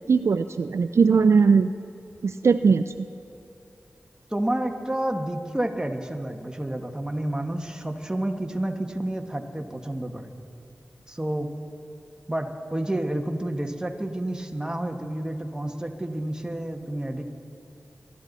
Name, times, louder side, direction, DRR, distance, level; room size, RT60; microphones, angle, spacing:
voice 1, 0.1-1.7 2.2-2.8, right 5 dB, 65° right, 11 dB, 0.3 m, -19 dB
voice 2, 4.3-10.3 11.1-11.5 12.3-17.2, right 1 dB, 15° right, 4 dB, 1.4 m, -30 dB
23.5 x 12.0 x 4.1 m, 2.7 s
cardioid pair, 45°, 5 cm